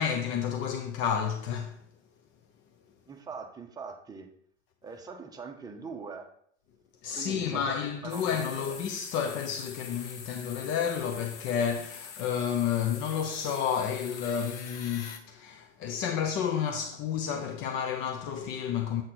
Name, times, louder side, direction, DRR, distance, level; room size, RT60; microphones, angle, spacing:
voice 1, 0.0-1.8 7.0-19.0, left 8 dB, 35° left, 0.6 m, -31 dB
voice 2, 3.1-4.3 4.8-6.3 7.1-7.7 8.0-8.2 8.7-8.8, right 5 dB, 10° right, 0.8 m, -42 dB
sound 1, 8.1-15.2, left 7 dB, 70° left, 1.0 m, -44 dB
7.8 x 4.3 x 4.1 m
hypercardioid pair, 110°, 37 cm